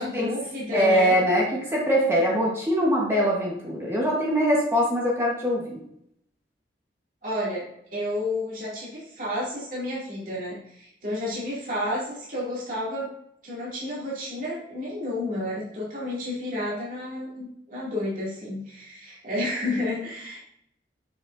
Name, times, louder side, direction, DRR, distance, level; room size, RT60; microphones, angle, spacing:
voice 1, 0.0-1.1 7.2-7.6 7.9-13.1 13.4-20.4, left 1 dB, 50° right, -7 dB, 2.5 m, -31 dB
voice 2, 0.7-5.8, equal, 15° right, -4 dB, 1.2 m, -23 dB
7.0 x 6.9 x 2.6 m, 0.75 s
head